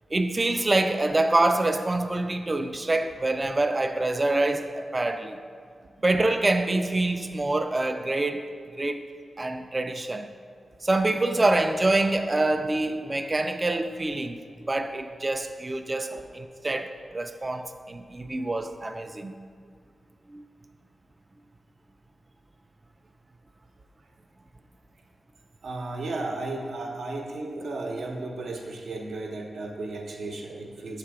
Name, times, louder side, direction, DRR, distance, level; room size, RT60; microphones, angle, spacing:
voice 1, 0.1-5.4 6.0-8.4 8.7-9.0 9.4-10.3 10.8-14.4 14.7-19.3 20.3-20.4, right 2 dB, 25° right, 7 dB, 0.3 m, -26 dB
voice 2, 25.6-31.0, right 2 dB, 75° right, 1 dB, 0.7 m, -34 dB
6.7 x 3.3 x 4.7 m, 2.1 s
wide cardioid pair, 115°, 0 cm